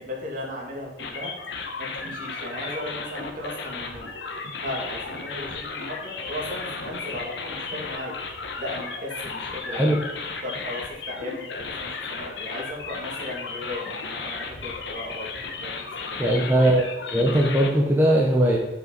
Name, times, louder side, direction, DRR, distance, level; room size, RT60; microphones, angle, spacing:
voice 1, 0.0-1.3 1.8-4.1 4.6-8.1 8.6-10.0 10.4-15.3 15.6-15.7 16.0-16.7, left 1 dB, 50° right, -3 dB, 2.3 m, -36 dB
sound 1, 1.0-17.7, left 4 dB, 85° left, 1.0 m, -34 dB
voice 2, 16.2-16.8 17.1-18.6, right 1 dB, 10° right, -2 dB, 0.9 m, -19 dB
7.5 x 5.6 x 4.1 m, 0.98 s
head